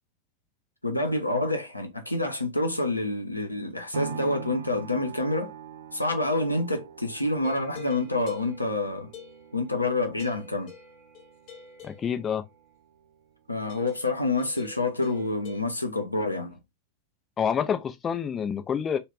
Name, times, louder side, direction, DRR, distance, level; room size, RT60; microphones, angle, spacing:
voice 1, 0.8-5.5 5.9-9.1 9.5-10.7 13.5-16.6, left 2 dB, 85° left, 0.6 m, -27 dB
sound 1, 3.9-12.0 12.5-12.6, right 6 dB, 65° right, 0.5 m, -43 dB
sound 2, 7.4-9.8 10.2-12.5 13.7-15.6, left 6 dB, 45° left, 0.9 m, -48 dB
voice 2, 11.8-12.4 17.4-19.0, left 7 dB, 25° left, 0.4 m, -27 dB
2.3 x 2.1 x 3.3 m
figure-of-eight pair, 90°, 0 cm